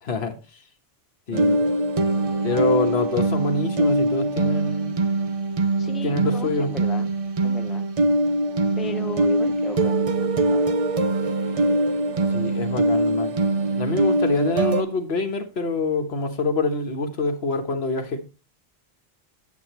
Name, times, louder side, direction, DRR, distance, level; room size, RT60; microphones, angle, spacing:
voice 1, 0.0-0.4 1.3-1.6 2.4-5.0 6.0-6.7 12.3-13.3 13.7-18.2, left 3 dB, 80° left, 1.5 m, -26 dB
sound 1, 1.3-14.8, right 2 dB, 40° right, 0.7 m, -22 dB
voice 2, 5.8-7.1 7.4-7.9 8.8-10.8, equal, ahead, 0.6 m, -36 dB
8.5 x 8.1 x 3.0 m
omnidirectional pair, 1.0 m